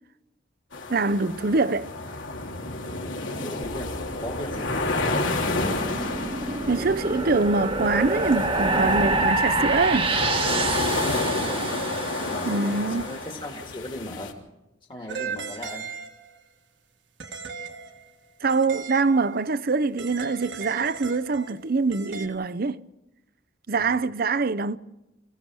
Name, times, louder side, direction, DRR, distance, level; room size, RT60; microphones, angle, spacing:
sound 1, 0.7-14.3, left 2 dB, 85° left, 3.3 m, -31 dB
voice 1, 0.9-1.9 6.7-10.2 12.4-13.1 18.4-22.8 23.7-24.8, right 3 dB, 50° right, 0.6 m, -24 dB
voice 2, 3.4-6.3 11.3-11.8 12.3-14.4 14.9-15.9 23.8-24.1, left 1 dB, 25° left, 1.8 m, -38 dB
sound 2, 3.6-13.0, right 2 dB, 30° right, 1.2 m, -27 dB
sound 3, 15.1-16.4 17.2-19.4 20.0-22.3, right 5 dB, 70° right, 1.8 m, -37 dB
26.5 x 16.0 x 6.2 m
head